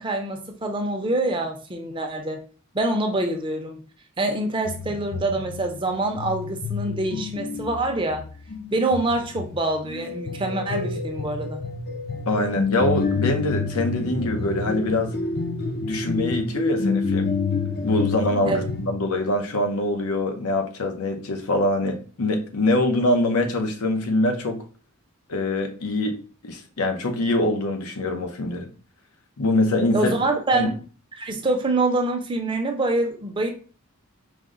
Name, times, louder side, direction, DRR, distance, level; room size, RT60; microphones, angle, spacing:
voice 1, 0.0-2.4 2.7-3.8 4.2-8.2 8.7-11.6 18.4-18.6 29.9-30.8 31.1-33.5, right 2 dB, 20° right, 0.5 m, -25 dB
sound 1, 4.6-18.9, left 4 dB, 45° left, 0.5 m, -28 dB
voice 2, 12.3-15.1 15.8-17.3 17.8-24.6 25.3-28.7 29.4-30.1 30.5-30.7, left 1 dB, 85° left, 0.7 m, -24 dB
4.8 x 2.1 x 3.7 m
head